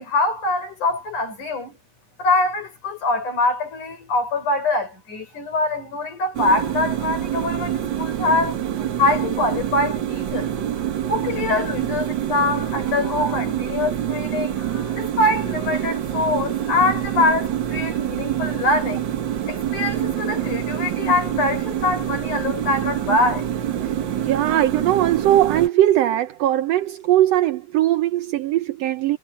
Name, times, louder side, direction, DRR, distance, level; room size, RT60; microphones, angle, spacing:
voice 1, 0.0-1.8 2.2-8.6 9.0-10.6 11.1-19.1 19.5-23.5, left 2 dB, 80° left, 7.2 m, -23 dB
sound 1, 6.3-25.7, right 10 dB, 55° right, 1.3 m, -26 dB
voice 2, 24.2-29.2, right 13 dB, 75° right, 1.5 m, -19 dB
omnidirectional pair, 3.5 m